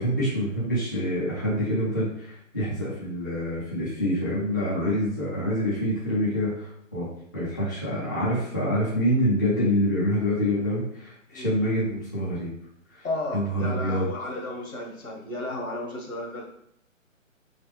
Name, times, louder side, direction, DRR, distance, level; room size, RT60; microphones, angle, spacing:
voice 1, 0.0-7.1 7.3-12.5 12.9-13.1 13.3-14.1, equal, 15° left, -9 dB, 0.4 m, -26 dB
voice 2, 13.0-16.4, left 2 dB, 85° left, 0 dB, 1.5 m, -33 dB
4.0 x 3.2 x 3.0 m, 0.71 s
hypercardioid pair, 150°, 41 cm